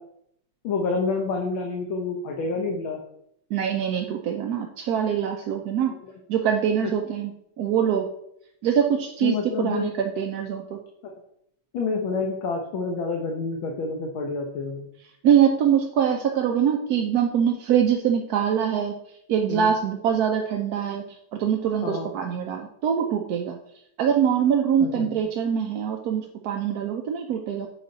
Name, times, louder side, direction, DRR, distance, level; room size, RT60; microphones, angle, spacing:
voice 1, 0.6-3.0 9.2-10.0 11.7-14.9 19.5-19.7 21.8-22.1 24.8-25.1, left 4 dB, 80° left, 2 dB, 1.7 m, -28 dB
voice 2, 3.5-5.9 6.3-7.3 7.6-8.1 8.6-10.8 15.2-18.9 19.3-21.0 21.3-23.6 24.0-27.7, right 8 dB, 65° right, 2 dB, 1.0 m, -23 dB
8.0 x 5.0 x 4.0 m, 0.73 s
omnidirectional pair, 2.2 m